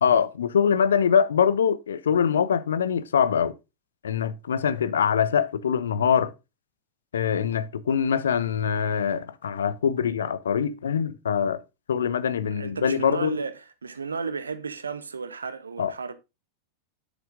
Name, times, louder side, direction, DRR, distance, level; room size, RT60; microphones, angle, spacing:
voice 1, 0.0-3.5 4.0-6.3 7.1-11.6 11.9-13.4 15.8-15.9, left 7 dB, 65° left, 0.6 m, -23 dB
voice 2, 12.6-16.1, right 5 dB, 75° right, 0.8 m, -33 dB
7.2 x 7.1 x 3.5 m
figure-of-eight pair, 90°, 0 cm